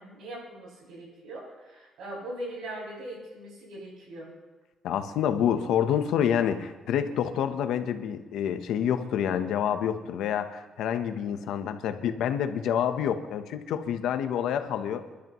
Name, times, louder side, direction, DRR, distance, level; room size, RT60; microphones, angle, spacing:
voice 1, 0.0-4.3, right 1 dB, 85° right, -3 dB, 6.6 m, -40 dB
voice 2, 4.8-15.1, left 9 dB, 90° left, 8 dB, 1.0 m, -28 dB
29.0 x 12.0 x 3.1 m, 1.2 s
cardioid pair, 135°, 0 cm